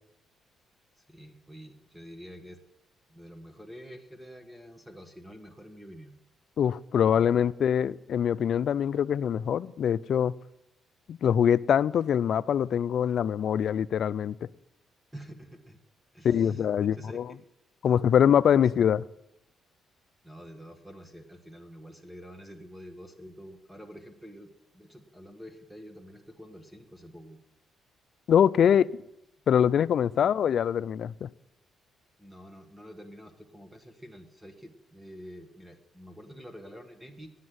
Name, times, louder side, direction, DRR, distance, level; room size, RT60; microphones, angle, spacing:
voice 1, 1.0-2.6 3.1-6.1 7.0-7.5 15.1-15.8 16.1-17.4 17.8-18.0 20.2-27.4 28.6-28.9 30.2-30.5 32.2-37.3, equal, 5° right, 5 dB, 1.5 m, -47 dB
voice 2, 6.6-10.3 11.1-14.5 16.2-17.2 17.8-19.0 28.3-28.8 29.5-31.3, left 8 dB, 65° left, 17 dB, 0.4 m, -24 dB
9.6 x 8.3 x 9.4 m, 0.86 s
cardioid pair, 90°, 0 cm